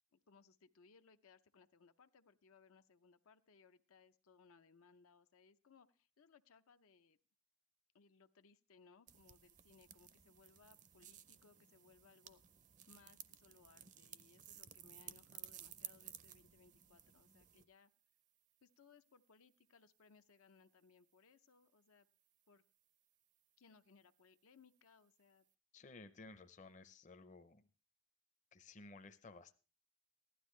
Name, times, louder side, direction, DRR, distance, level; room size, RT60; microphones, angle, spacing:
voice 1, 0.1-7.2 7.9-12.4 12.9-17.9 18.6-22.1 22.5-22.6 23.6-25.4, left 5 dB, 85° left, 9 dB, 0.6 m, -67 dB
sound 1, 9.1-17.7, right 10 dB, 35° right, 0.5 m, -56 dB
voice 2, 25.7-27.6 28.5-29.5, left 3 dB, 35° left, 10 dB, 0.6 m, -56 dB
15.5 x 11.5 x 3.2 m, 0.32 s
head